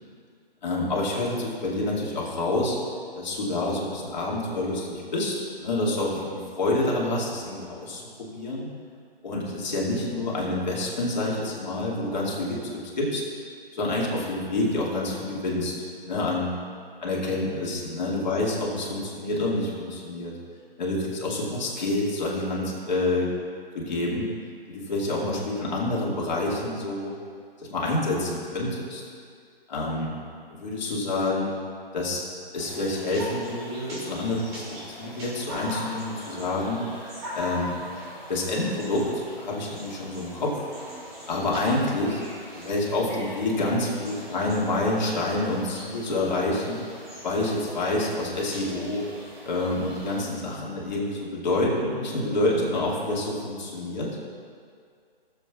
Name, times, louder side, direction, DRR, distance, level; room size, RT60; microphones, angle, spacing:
voice 1, 0.6-2.8 3.1-8.7 9.2-13.2 13.7-15.7 16.0-16.5 17.0-20.3 20.8-23.3 23.7-24.3 24.7-27.1 27.7-29.0 29.7-30.1 30.5-31.5 31.9-32.2 32.5-34.6 34.9-36.8 37.3-37.7 38.3-40.6 41.3-42.2 42.5-46.8 47.2-49.1 49.5-54.1, left 2 dB, 50° left, -4 dB, 2.3 m, -27 dB
sound 1, 32.6-50.3, equal, 25° right, 2.4 m, -41 dB
18.0 x 7.5 x 2.4 m, 2.2 s
hypercardioid pair, 165°, 30 cm